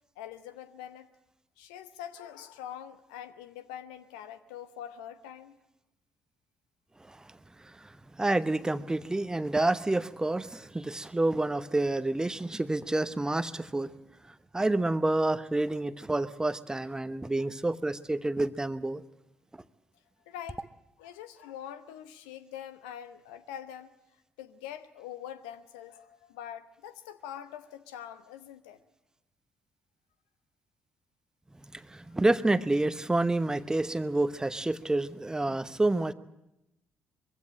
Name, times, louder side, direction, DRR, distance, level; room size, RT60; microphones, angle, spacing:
voice 1, 0.2-1.1 1.6-5.6 17.4-17.5 20.3-20.6 21.0-23.9 24.4-28.8, left 10 dB, 70° left, 12 dB, 0.9 m, -44 dB
voice 2, 8.2-13.9 14.5-19.0 31.7-36.1, right 2 dB, 15° right, 14 dB, 0.9 m, -28 dB
23.0 x 15.5 x 7.7 m, 0.90 s
figure-of-eight pair, 45°, 5 cm